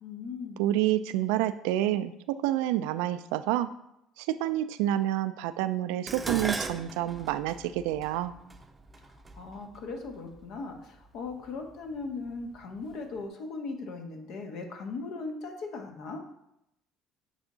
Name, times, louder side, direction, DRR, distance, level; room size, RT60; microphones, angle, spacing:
voice 1, 0.0-0.6 9.3-16.2, left 3 dB, 70° left, 3 dB, 1.2 m, -38 dB
voice 2, 0.6-3.7 4.2-8.3, right 13 dB, 85° right, 13 dB, 0.3 m, -28 dB
Dishes pots and pans, 6.1-10.4 11.3-11.7 12.1-12.9 13.2-13.3, right 3 dB, 20° right, 0.6 m, -38 dB
8.1 x 3.6 x 3.9 m, 0.81 s
supercardioid pair, 80°, 0 cm